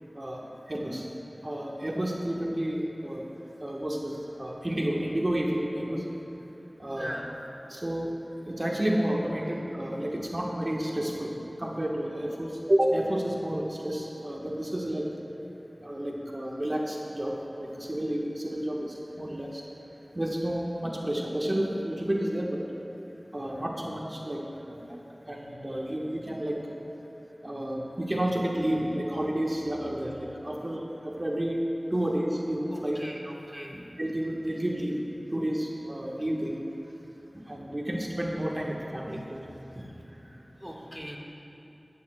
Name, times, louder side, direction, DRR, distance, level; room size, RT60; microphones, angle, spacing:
voice 1, 0.1-1.1 1.4-3.2 3.6-6.0 6.8-7.2 7.7-8.2 8.5-11.3 11.6-15.1 15.8-19.6 20.1-22.6 23.3-25.0 25.2-26.6 27.4-31.6 31.9-33.0 34.0-35.0 35.3-36.6 37.3-40.9, right 1 dB, 45° right, -2 dB, 1.3 m, -31 dB
voice 2, 7.0-7.3 32.7-33.8 39.8-41.2, equal, 5° right, -2 dB, 1.6 m, -41 dB
17.5 x 13.5 x 2.3 m, 3.0 s
wide cardioid pair, 45°, 0 cm